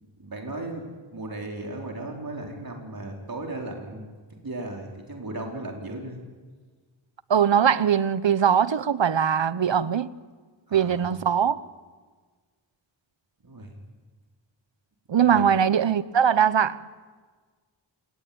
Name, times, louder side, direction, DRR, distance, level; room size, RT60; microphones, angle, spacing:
voice 1, 0.2-4.1 4.4-6.2 10.7-11.1 13.4-13.7 15.1-15.4, right 2 dB, 50° right, 4.4 m, -36 dB
voice 2, 7.3-10.1 10.7-11.6 15.1-16.8, right 8 dB, 70° right, 1.0 m, -21 dB
27.5 x 20.5 x 8.8 m
wide cardioid pair, 55°, 46 cm